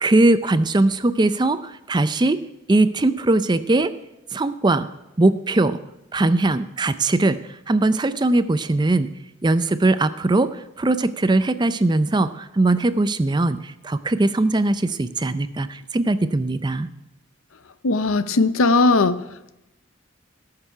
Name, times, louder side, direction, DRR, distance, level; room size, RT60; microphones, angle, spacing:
voice 1, 0.0-2.4 2.7-3.9 4.3-4.9 5.2-5.8 6.1-7.4 7.7-9.1 9.4-16.9, right 2 dB, 20° right, 13 dB, 0.4 m, -20 dB
voice 2, 17.8-19.2, left 3 dB, 85° left, 13 dB, 0.7 m, -18 dB
17.5 x 6.8 x 5.6 m, 0.92 s
head